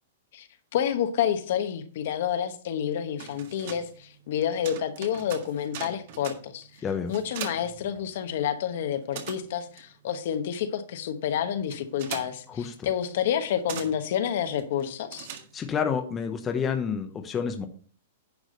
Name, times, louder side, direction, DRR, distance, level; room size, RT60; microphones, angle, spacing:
voice 1, 0.7-6.7 7.1-15.3, left 9 dB, 60° left, 9 dB, 1.1 m, -29 dB
sound 1, 3.0-8.6 8.8-15.9, right 7 dB, 50° right, 1.7 m, -42 dB
voice 2, 6.8-7.1 12.5-12.9 15.5-17.7, left 6 dB, 15° left, 5 dB, 0.8 m, -29 dB
10.5 x 4.9 x 5.2 m, 0.44 s
hypercardioid pair, 160°, 0 cm